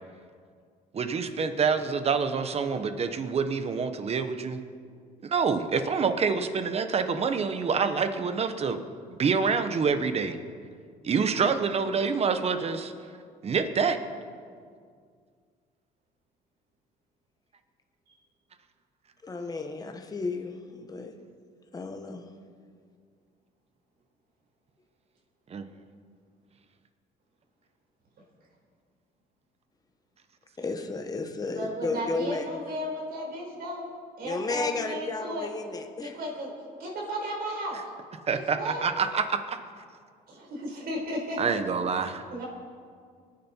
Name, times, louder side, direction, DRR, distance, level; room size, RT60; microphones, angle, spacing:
voice 1, 0.9-4.6 5.2-8.8 9.2-10.4 11.0-12.9 13.4-14.0 25.5-25.6 38.3-39.6 41.4-42.2, right 5 dB, 35° right, 9 dB, 1.2 m, -27 dB
voice 2, 19.2-21.2 21.7-22.3 30.6-32.5 34.2-36.2, left 3 dB, 20° left, 5 dB, 1.3 m, -33 dB
voice 3, 31.5-33.9 34.2-35.5 36.0-36.5 36.8-37.8 38.3-38.8 40.3-41.6 42.3-42.4, equal, 65° right, -2 dB, 4.7 m, -34 dB
23.5 x 9.6 x 4.6 m, 2.1 s
cardioid pair, 110°, 17 cm